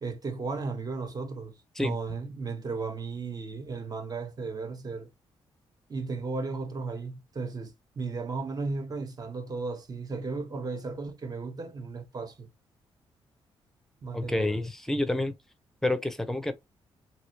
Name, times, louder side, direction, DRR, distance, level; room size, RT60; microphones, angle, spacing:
voice 1, 0.0-5.1 5.9-12.5 14.0-14.7, right 4 dB, 40° right, 1.0 m, -35 dB
voice 2, 14.1-15.3 15.8-16.5, left 1 dB, 5° left, 0.6 m, -28 dB
3.0 x 2.8 x 2.8 m
cardioid pair, 70°, 10 cm